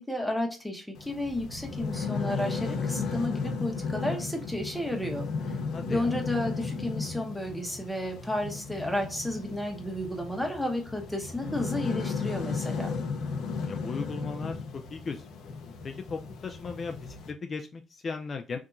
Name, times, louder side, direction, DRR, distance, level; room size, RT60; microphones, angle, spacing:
voice 1, 0.0-5.2 5.9-12.9, left 1 dB, ahead, 2 dB, 1.0 m, -32 dB
sound 1, 1.0-17.3, left 4 dB, 80° left, 0.6 m, -35 dB
voice 2, 5.7-6.2 13.1-18.6, left 4 dB, 45° left, 5 dB, 0.3 m, -37 dB
3.5 x 2.7 x 2.5 m, 0.34 s
cardioid pair, 90°, 0 cm